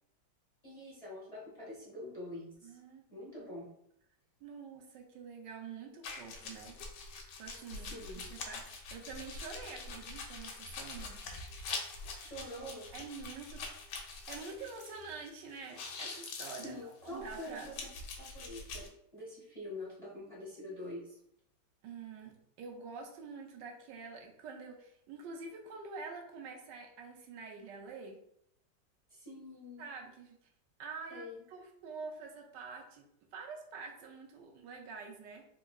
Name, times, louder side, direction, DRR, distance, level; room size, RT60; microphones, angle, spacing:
voice 1, 0.6-2.8 3.1-3.7 7.7-8.3 12.2-12.9 16.6-17.8 18.3-21.2 29.1-29.8 31.1-31.4, left 1 dB, 30° left, -6 dB, 0.8 m, -45 dB
voice 2, 2.6-3.0 4.4-6.8 7.4-7.9 8.3-11.2 12.9-13.6 14.0-17.7 21.8-28.2 29.8-30.4 30.8-33.0 33.3-35.5, right 4 dB, 80° right, 2 dB, 1.2 m, -47 dB
sound 1, 6.0-15.3 15.6-18.9, left 4 dB, 75° left, 1.2 m, -44 dB
3.6 x 2.9 x 2.2 m, 0.72 s
omnidirectional pair, 1.9 m